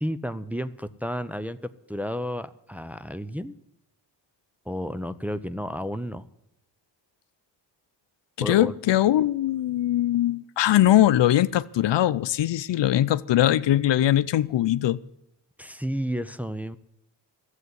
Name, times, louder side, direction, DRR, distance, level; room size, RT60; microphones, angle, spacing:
voice 1, 0.0-3.6 4.7-6.2 8.4-8.7 15.6-16.8, equal, 5° right, 0.6 m, -32 dB
voice 2, 8.4-15.0, left 13 dB, 75° left, 0.6 m, -21 dB
12.5 x 8.2 x 9.3 m
cardioid pair, 65°, 43 cm